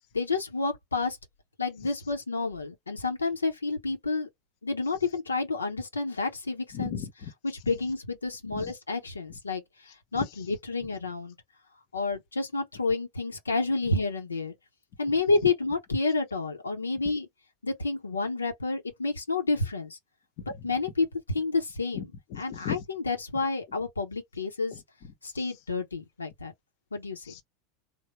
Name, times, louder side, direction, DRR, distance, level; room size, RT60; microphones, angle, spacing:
voice 1, 0.1-1.2 1.6-4.3 4.6-7.0 7.7-11.3 11.9-14.5 15.0-17.3 17.6-20.0 20.6-22.0 22.4-24.7 25.2-26.5 26.9-27.3, left 3 dB, 90° left, 0.7 m, -29 dB
voice 2, 6.7-7.3 8.5-8.7 9.9-10.4 20.4-20.7 21.9-22.0 22.3-22.9 24.7-25.1 25.4-25.5 27.2-27.4, left 8 dB, 55° left, 0.8 m, -38 dB
3.3 x 2.0 x 2.9 m
figure-of-eight pair, 85°, 0 cm